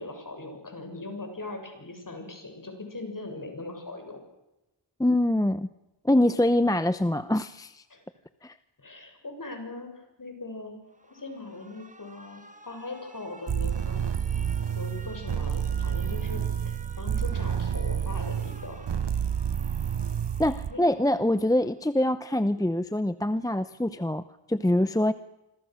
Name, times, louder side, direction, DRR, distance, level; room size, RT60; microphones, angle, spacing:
voice 1, 0.0-4.2 7.9-8.0 8.8-10.8 11.1-14.1 14.7-18.9 20.7-20.8, left 2 dB, 45° left, 4 dB, 7.3 m, -40 dB
voice 2, 5.0-5.7 6.0-7.8 8.4-8.6 20.4-25.1, left 1 dB, 10° left, 13 dB, 0.8 m, -24 dB
Alarm, 10.9-21.9, right 2 dB, 15° right, 2.4 m, -52 dB
sound 1, 13.5-20.7, right 8 dB, 65° right, 1.1 m, -29 dB
26.5 x 22.5 x 6.5 m, 0.96 s
wide cardioid pair, 95°, 44 cm